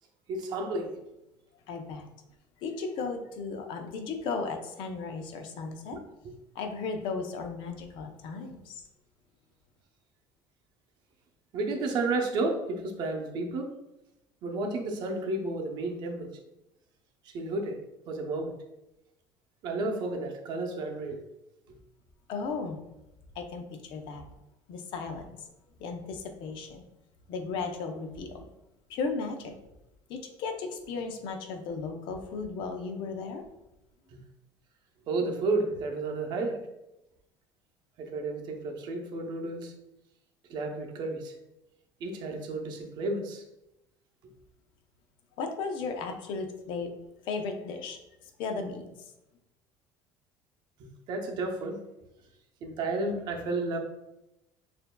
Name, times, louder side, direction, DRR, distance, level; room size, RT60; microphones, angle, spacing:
voice 1, 0.3-1.0 5.9-6.0 11.5-13.7 14.4-16.4 17.2-18.5 19.6-21.2 34.1-34.2 35.1-36.7 38.0-39.7 40.5-41.4 42.0-43.4 50.8-51.8 52.6-53.8, right 2 dB, 55° right, 3 dB, 0.7 m, -32 dB
voice 2, 1.7-2.1 2.6-6.0 6.5-8.8 22.3-22.8 23.3-24.2 24.7-25.5 25.8-26.9 27.3-28.4 28.9-29.6 30.1-33.4 45.4-46.9 47.2-49.1, left 4 dB, 60° left, 5 dB, 0.6 m, -35 dB
6.6 x 2.6 x 2.2 m, 0.92 s
cardioid pair, 150°, 9 cm